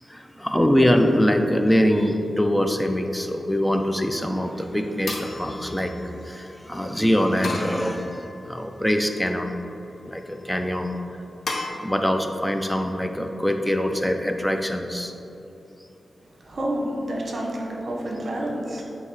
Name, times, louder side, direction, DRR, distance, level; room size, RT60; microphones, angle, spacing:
voice 1, 0.1-9.5 10.1-10.9 11.8-15.1, equal, 5° left, 5 dB, 0.5 m, -23 dB
sound 1, 3.7-4.2 5.1-6.4 7.4-8.5 9.1-9.7 11.5-11.7, left 3 dB, 75° left, 0.7 m, -35 dB
voice 2, 16.4-18.8, right 1 dB, 55° right, -1 dB, 1.0 m, -29 dB
8.1 x 2.9 x 4.8 m, 3.0 s
wide cardioid pair, 85°, 0 cm